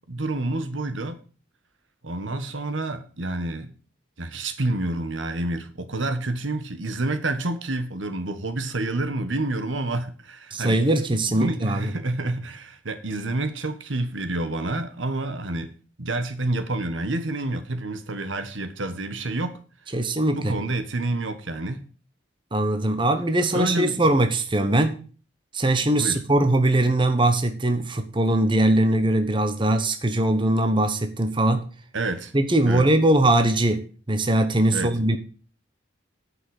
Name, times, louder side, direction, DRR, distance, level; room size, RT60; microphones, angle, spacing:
voice 1, 0.1-1.2 2.0-3.7 4.2-10.8 11.3-15.7 16.0-19.6 20.3-21.8 23.5-24.0 26.0-26.2 31.9-32.3 32.7-32.9 34.7-34.9, right 2 dB, 75° right, 10 dB, 1.5 m, -28 dB
voice 2, 10.5-11.9 19.9-20.5 22.5-25.0 25.5-31.6 32.3-33.8 34.1-35.2, right 1 dB, 25° right, 8 dB, 1.0 m, -21 dB
9.7 x 5.7 x 8.3 m, 0.39 s
head